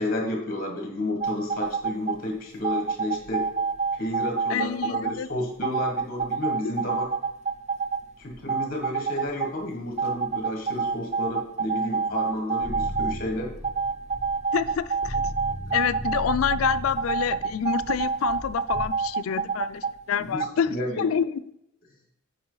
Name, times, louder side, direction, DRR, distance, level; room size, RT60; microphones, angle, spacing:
voice 1, 0.0-3.5 3.9-7.1 8.2-13.5 20.2-21.1, left 1 dB, 45° left, 1 dB, 1.6 m, -31 dB
sound 1, 1.2-2.2 2.6-5.1 5.6-8.0 8.3-9.5 10.0-13.2 13.6-19.9 20.4-20.5, right 5 dB, 35° right, 0.4 m, -27 dB
voice 2, 4.5-5.3 6.6-6.7 14.5-15.2 15.7-21.4, left 7 dB, 90° left, 15 dB, 0.4 m, -27 dB
sound 2, 12.6-18.9, equal, 10° left, 1.7 m, -37 dB
8.6 x 4.7 x 3.9 m, 0.78 s
head